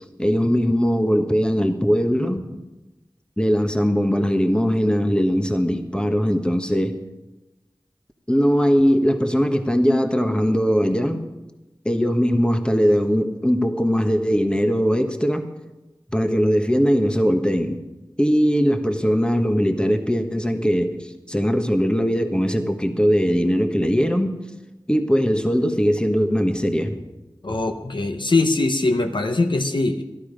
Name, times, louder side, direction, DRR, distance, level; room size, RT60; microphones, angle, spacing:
voice 1, 0.2-2.6 3.4-7.0 8.3-11.2 11.8-15.4 16.1-17.8 18.2-24.4 24.9-27.0 27.5-27.6, equal, 10° left, 6 dB, 1.2 m, -20 dB
voice 2, 27.4-30.0, left 2 dB, 65° left, 6 dB, 0.9 m, -21 dB
14.0 x 12.0 x 5.1 m, 1.0 s
wide cardioid pair, 55°, 9 cm